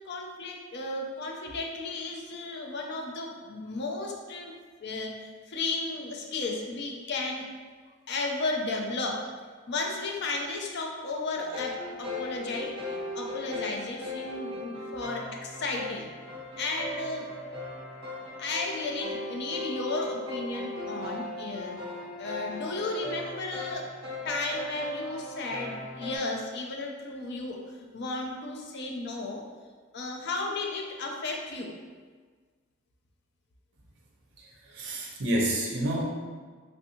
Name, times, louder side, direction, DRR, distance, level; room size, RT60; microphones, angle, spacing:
voice 1, 0.1-4.5 4.8-7.5 8.1-9.2 9.7-16.1 16.6-17.3 18.4-21.8 22.2-23.9 24.2-29.4 29.9-31.7, left 3 dB, 55° left, 1 dB, 0.4 m, -34 dB
sound 1, 11.3-26.2, left 1 dB, 25° right, 1.3 m, -38 dB
voice 2, 34.4-36.0, right 1 dB, 60° right, -2 dB, 0.6 m, -29 dB
3.3 x 2.6 x 2.8 m, 1.5 s
head